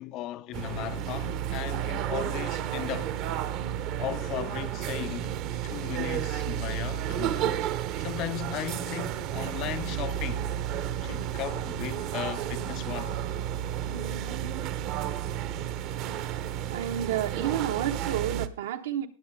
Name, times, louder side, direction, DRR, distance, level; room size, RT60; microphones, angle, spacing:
voice 1, 0.0-3.1 4.0-5.3 5.6-7.7 8.0-10.5 11.0-13.2, left 14 dB, 40° left, 0.5 m, -36 dB
sound 1, 0.5-18.5, right 11 dB, 40° right, 0.9 m, -32 dB
voice 2, 16.7-19.1, right 11 dB, 80° right, 1.5 m, -30 dB
19.5 x 7.7 x 3.6 m
supercardioid pair, 140°, 0 cm